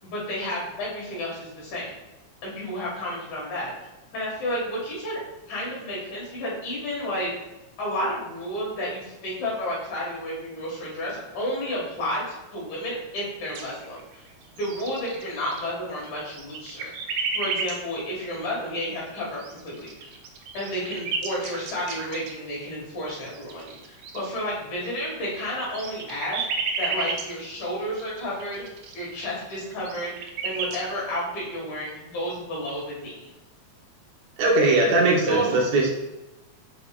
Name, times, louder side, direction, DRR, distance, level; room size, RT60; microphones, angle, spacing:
voice 1, 0.0-1.9 2.4-3.7 4.1-5.2 5.5-7.3 7.8-14.3 14.5-20.1 20.5-26.4 26.8-28.6 28.9-30.1 30.4-33.3 35.3-35.6, equal, 80° left, -5 dB, 3.3 m, -31 dB
sound 1, 13.5-14.2 14.4-15.7 16.0-17.8 19.4-22.5 23.2-24.2 24.9-28.9 29.4-29.5 29.7-30.9, right 4 dB, 90° right, 1.2 m, -32 dB
voice 2, 34.4-35.9, right 2 dB, 75° right, -1 dB, 2.3 m, -20 dB
7.1 x 5.5 x 2.4 m, 1.0 s
omnidirectional pair, 3.3 m